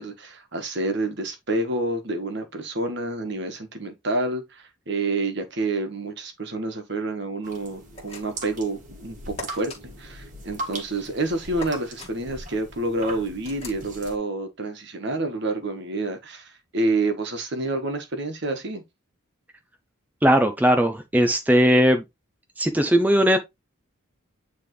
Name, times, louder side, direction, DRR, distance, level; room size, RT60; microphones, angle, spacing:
voice 1, 0.0-9.7 10.0-18.8, right 2 dB, 55° right, 1.4 m, -28 dB
sound 1, 7.4-14.2, right 2 dB, 35° right, 1.6 m, -40 dB
sound 2, 7.9-8.5 9.4-9.8 11.6-12.1 13.4-13.8, left 3 dB, 30° left, 1.9 m, -39 dB
voice 2, 20.2-22.0 22.6-23.4, equal, 10° right, 0.5 m, -18 dB
9.0 x 3.5 x 3.2 m
head